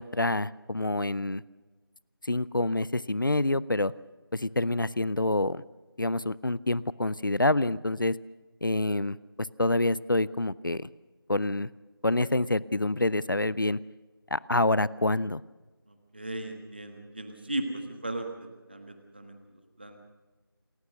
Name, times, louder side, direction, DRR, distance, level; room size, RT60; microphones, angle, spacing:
voice 1, 0.0-1.4 2.2-3.9 4.3-5.6 6.0-8.1 8.6-9.2 9.6-10.9 11.3-11.7 12.0-13.8 14.3-15.4, left 2 dB, 60° left, 20 dB, 0.6 m, -27 dB
voice 2, 15.9-20.0, right 1 dB, 25° right, 5 dB, 1.5 m, -37 dB
28.5 x 14.5 x 6.5 m, 1.2 s
figure-of-eight pair, 175°, 12 cm